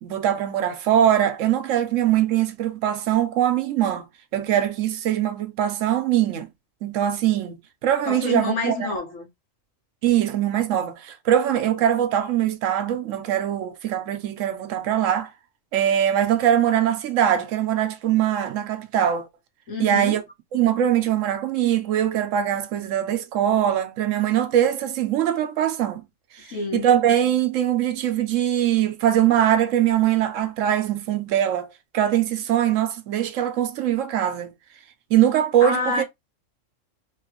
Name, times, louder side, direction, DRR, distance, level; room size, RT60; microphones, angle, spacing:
voice 1, 0.0-4.1 4.3-6.5 6.8-8.9 10.0-15.3 15.7-19.3 19.8-20.2 20.5-26.0 26.7-31.7 31.9-34.5 35.1-36.0, right 10 dB, 75° right, 1.0 m, -22 dB
voice 2, 8.0-9.3 19.7-20.2 26.5-26.9 35.6-36.0, left 3 dB, 80° left, 1.5 m, -28 dB
3.3 x 2.4 x 2.8 m
omnidirectional pair, 1.3 m